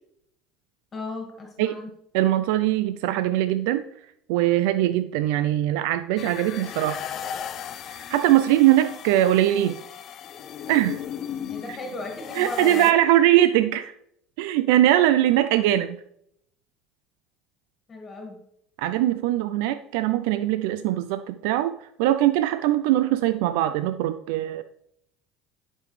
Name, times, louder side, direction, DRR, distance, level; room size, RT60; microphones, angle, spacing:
voice 1, 0.9-1.9 11.5-13.1 17.9-18.4, left 2 dB, 30° left, 0 dB, 2.0 m, -35 dB
voice 2, 2.1-3.8 4.3-7.0 7.9-9.8 10.7-11.0 12.3-14.0 14.4-16.0 18.8-24.6, right 13 dB, 80° right, 12 dB, 0.4 m, -21 dB
sound 1, 6.2-12.9, left 9 dB, 50° left, 0.6 m, -36 dB
11.5 x 5.3 x 3.2 m, 0.74 s
supercardioid pair, 95°, 0 cm